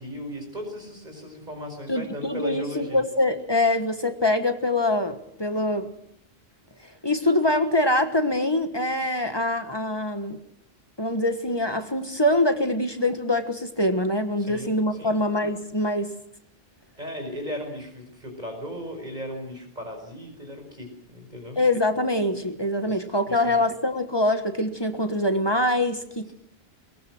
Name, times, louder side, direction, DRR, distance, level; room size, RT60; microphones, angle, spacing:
voice 1, 0.0-3.0 14.4-14.7 15.0-15.2 17.0-21.6 22.8-23.0 23.3-23.6, equal, 45° right, 3 dB, 5.3 m, -36 dB
voice 2, 1.9-5.9 7.0-10.4 11.0-16.1 21.5-26.3, left 1 dB, 25° left, 7 dB, 1.5 m, -24 dB
21.5 x 21.5 x 6.1 m, 0.69 s
omnidirectional pair, 1.1 m